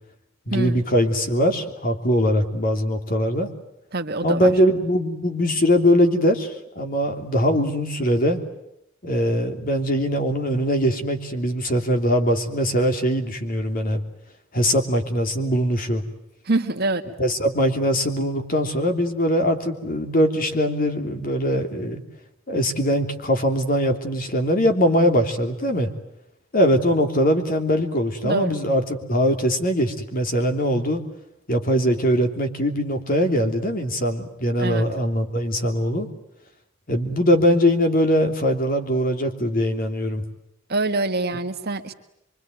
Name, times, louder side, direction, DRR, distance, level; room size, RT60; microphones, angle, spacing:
voice 1, 0.5-3.5 4.2-8.4 9.0-14.0 14.5-16.0 17.2-22.0 22.5-25.9 26.5-31.0 31.5-36.1 36.9-40.2, equal, 45° left, 5 dB, 3.2 m, -21 dB
voice 2, 3.9-4.5 16.5-17.0 28.2-28.6 34.6-34.8 40.7-41.9, right 2 dB, 50° right, 5 dB, 1.8 m, -25 dB
25.5 x 24.5 x 9.3 m, 0.80 s
head